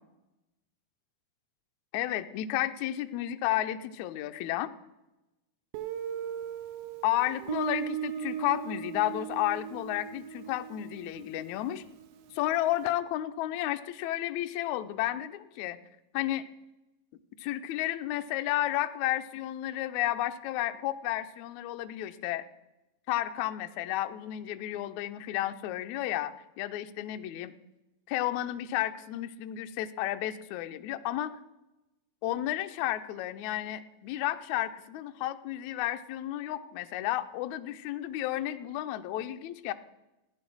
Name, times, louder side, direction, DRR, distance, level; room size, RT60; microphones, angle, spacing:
voice 1, 1.9-4.7 7.0-11.8 12.3-15.8 16.1-16.4 17.4-22.4 23.1-27.5 28.1-31.4 32.2-39.7, left 14 dB, 85° left, 9 dB, 1.6 m, -32 dB
Guitar, 5.7-12.4, right 10 dB, 70° right, 2.1 m, -38 dB
15.0 x 10.5 x 6.2 m, 0.98 s
omnidirectional pair, 4.3 m